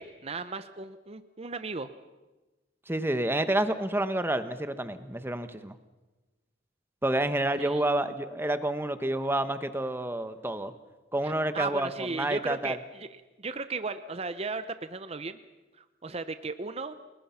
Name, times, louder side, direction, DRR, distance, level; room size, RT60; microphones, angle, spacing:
voice 1, 0.0-1.9 7.6-7.8 11.2-15.4 15.8-17.0, right 4 dB, 35° right, 11 dB, 0.8 m, -36 dB
voice 2, 2.9-5.8 7.0-10.7 11.1-12.8, right 1 dB, 10° right, 10 dB, 1.2 m, -29 dB
29.0 x 21.0 x 5.8 m, 1.2 s
head